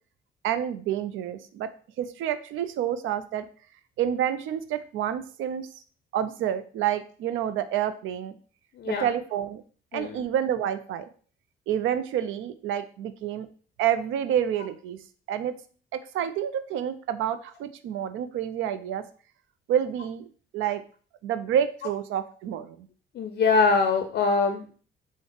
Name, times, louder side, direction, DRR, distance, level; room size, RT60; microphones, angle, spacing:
voice 1, 0.4-1.7 2.0-3.5 4.0-5.7 6.1-8.3 8.8-9.6 9.9-11.0 11.7-13.5 13.8-15.0 15.3-15.5 15.9-19.0 19.7-20.2 20.5-20.8 21.2-22.8, right 10 dB, 80° right, 11 dB, 0.4 m, -28 dB
voice 2, 8.8-9.1 9.9-10.2 23.1-24.7, left 4 dB, 55° left, 6 dB, 0.4 m, -23 dB
3.4 x 2.0 x 3.8 m, 0.42 s
cardioid pair, 90°, 20 cm